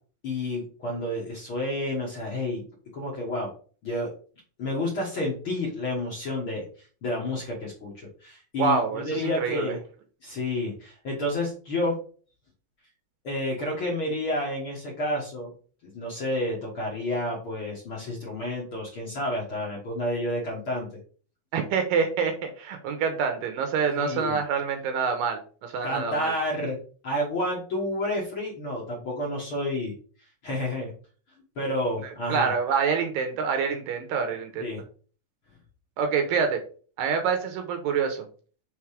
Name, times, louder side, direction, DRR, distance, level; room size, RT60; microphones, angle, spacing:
voice 1, 0.2-2.6 2.9-3.5 3.8-4.1 4.6-6.7 7.0-9.8 10.2-11.9 13.2-15.5 15.9-20.9 24.0-24.4 25.8-26.8 27.0-29.9 30.4-30.9 31.6-32.5 34.6-34.8, left 1 dB, 50° left, -3 dB, 1.7 m, -30 dB
voice 2, 8.6-9.8 21.5-26.3 32.3-34.7 36.0-36.6 37.0-38.3, right 6 dB, 75° right, 6 dB, 2.4 m, -26 dB
6.0 x 3.9 x 4.9 m, 0.41 s
omnidirectional pair, 4.3 m